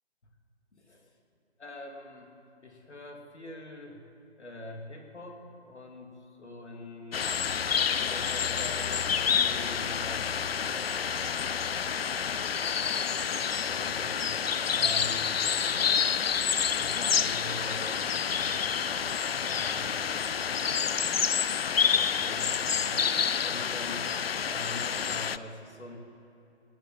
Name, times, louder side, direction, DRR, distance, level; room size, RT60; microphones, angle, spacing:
voice 1, 0.7-1.1 1.6-2.3 2.6-4.0 4.4-7.3 8.1-10.7 13.7-15.4 16.8-18.1 19.4-20.4 21.9-24.2 24.4-26.0, left 1 dB, 75° left, 2 dB, 3.0 m, -44 dB
sound 1, 7.1-25.4, left 7 dB, 60° left, 0.6 m, -28 dB
16.5 x 9.0 x 8.1 m, 2.7 s
figure-of-eight pair, 150°, 34 cm